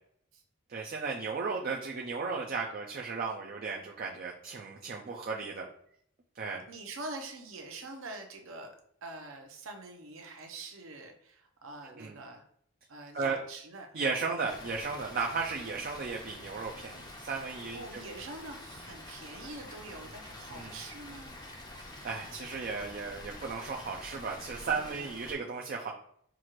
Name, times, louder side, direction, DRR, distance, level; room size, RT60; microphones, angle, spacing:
voice 1, 0.7-5.7 6.3-6.6 11.8-12.2 13.1-13.4 13.9-18.0 20.5-20.8 22.0-25.9, right 4 dB, 45° right, 0 dB, 0.4 m, -35 dB
voice 2, 6.7-8.7 9.0-12.4 12.9-13.9 17.7-21.4 24.7-25.3, right 2 dB, 70° right, 4 dB, 0.8 m, -45 dB
Water, 14.5-25.4, left 1 dB, 20° left, 0.5 m, -47 dB
6.0 x 2.4 x 3.0 m, 0.66 s
head